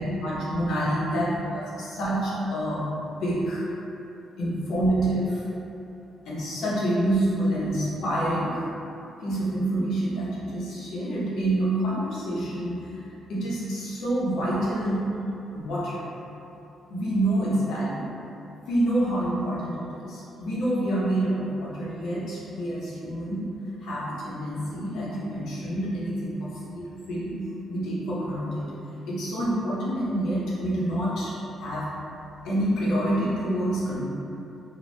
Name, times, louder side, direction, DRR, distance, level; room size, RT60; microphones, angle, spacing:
voice 1, 0.0-2.9 3.2-3.7 4.4-5.4 6.2-8.7 9.2-13.0 13.3-15.1 15.5-16.1 16.9-18.1 18.7-23.5 23.8-27.3 27.7-28.7 29.1-31.9 32.4-34.0, right 1 dB, 75° left, -7 dB, 0.7 m, -27 dB
2.5 x 2.2 x 3.2 m, 2.9 s
cardioid pair, 90°, 0 cm